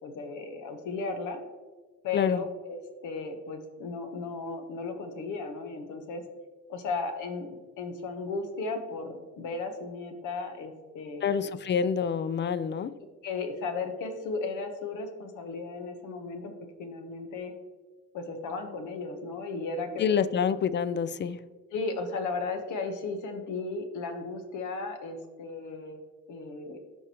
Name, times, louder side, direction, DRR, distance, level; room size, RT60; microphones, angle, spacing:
voice 1, 0.0-1.4 2.0-6.2 6.7-7.5 7.8-11.5 13.2-16.5 16.8-17.5 18.1-20.3 21.7-26.0 26.3-26.8, left 4 dB, 85° left, 6 dB, 1.1 m, -35 dB
voice 2, 2.1-2.4 11.2-12.9 20.0-21.4, left 7 dB, 40° left, 15 dB, 0.4 m, -27 dB
12.5 x 4.6 x 2.9 m, 1.3 s
cardioid pair, 90°, 30 cm